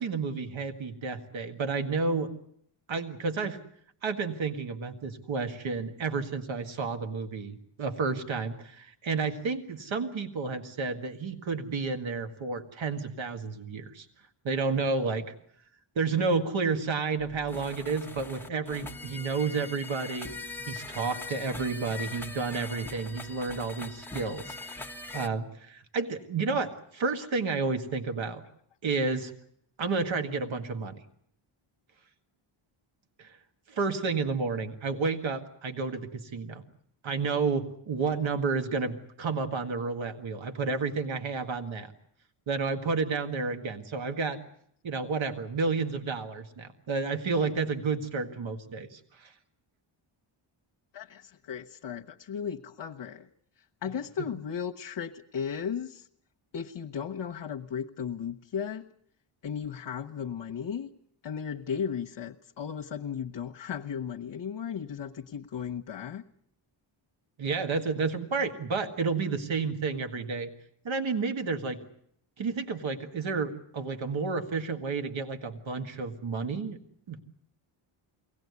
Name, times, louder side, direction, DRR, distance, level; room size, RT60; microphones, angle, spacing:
voice 1, 0.0-2.3 2.9-3.6 4.0-14.1 14.4-15.3 16.0-20.3 20.7-28.4 28.8-29.3 29.8-31.0 33.2-33.4 33.7-36.6 37.0-41.9 42.5-44.4 44.8-49.3 67.4-70.5 70.8-71.8 72.4-76.8 77.1-77.2, right 4 dB, 65° right, 8 dB, 1.9 m, -31 dB
sound 1, 17.2-25.3, left 3 dB, 5° left, 0.9 m, -41 dB
voice 2, 50.9-53.3 53.8-56.1 56.5-58.9 59.4-60.9 61.2-66.2, left 7 dB, 60° left, 3 dB, 1.0 m, -35 dB
23.5 x 17.5 x 9.6 m, 0.69 s
cardioid pair, 105°, 50 cm